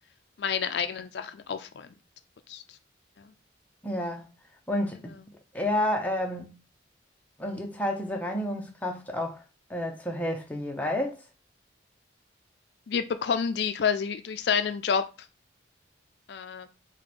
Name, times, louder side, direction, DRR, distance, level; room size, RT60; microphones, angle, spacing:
voice 1, 0.4-1.9 2.5-2.6 3.2-3.3 12.9-15.0 16.3-16.7, left 6 dB, 65° left, 0.4 m, -29 dB
voice 2, 3.8-4.3 4.7-5.2 5.5-6.5 7.4-9.4 9.7-11.2, left 1 dB, 10° left, 0.6 m, -30 dB
4.6 x 2.2 x 4.2 m
head